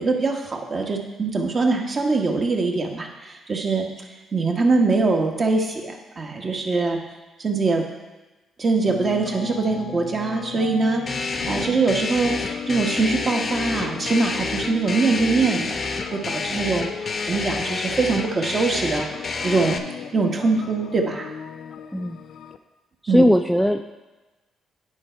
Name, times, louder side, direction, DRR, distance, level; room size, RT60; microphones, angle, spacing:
voice 1, 0.0-3.9 4.3-7.0 7.4-7.9 8.6-15.8 16.1-19.1 19.4-19.8 20.1-21.3 23.1-23.2, right 3 dB, 40° right, 2 dB, 1.2 m, -23 dB
sound 1, 8.8-22.6, left 7 dB, 70° left, 0.4 m, -36 dB
sound 2, 11.1-19.8, left 3 dB, 45° left, 0.7 m, -29 dB
voice 2, 23.0-23.9, equal, ahead, 5 dB, 0.3 m, -18 dB
9.8 x 4.7 x 4.5 m, 1.2 s
cardioid pair, 90°, 0 cm